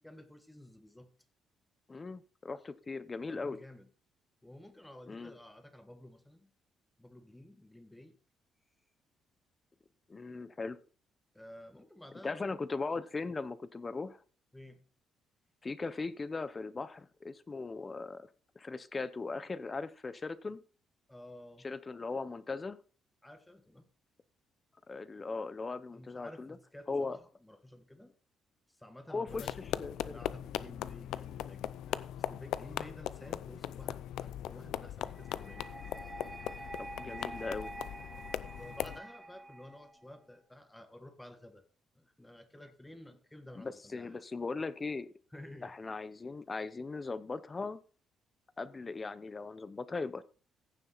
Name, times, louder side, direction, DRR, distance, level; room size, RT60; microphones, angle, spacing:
voice 1, 0.0-1.1 3.3-3.9 4.4-6.5 7.0-8.1 11.3-12.5 14.5-14.8 21.1-21.7 23.2-23.9 25.9-28.1 28.8-35.6 38.5-41.6 41.9-44.2 45.3-45.7, left 1 dB, 5° left, 1.5 m, -52 dB
voice 2, 1.9-3.6 5.1-5.4 10.1-10.8 12.2-14.2 15.6-18.3 18.5-20.6 21.6-22.8 24.9-26.6 26.9-27.2 29.1-29.5 29.8-30.1 36.8-37.7 43.6-45.1 45.6-47.8 48.6-50.2, left 3 dB, 25° left, 0.9 m, -38 dB
sound 1, 29.3-39.0, left 11 dB, 80° left, 0.6 m, -39 dB
sound 2, 35.2-40.2, right 2 dB, 10° right, 1.0 m, -47 dB
15.5 x 7.1 x 4.1 m
cardioid pair, 120°, 0 cm